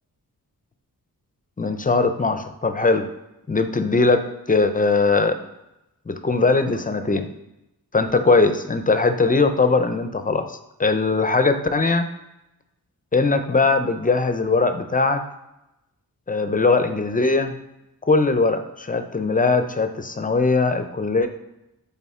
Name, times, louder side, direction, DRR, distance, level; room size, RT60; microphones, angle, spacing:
voice 1, 1.6-3.1 3.5-5.4 6.1-7.3 7.9-12.1 13.1-15.2 16.3-17.5 18.1-21.3, left 3 dB, 25° left, 9 dB, 0.4 m, -20 dB
8.5 x 3.5 x 3.6 m, 0.92 s
wide cardioid pair, 115°, 36 cm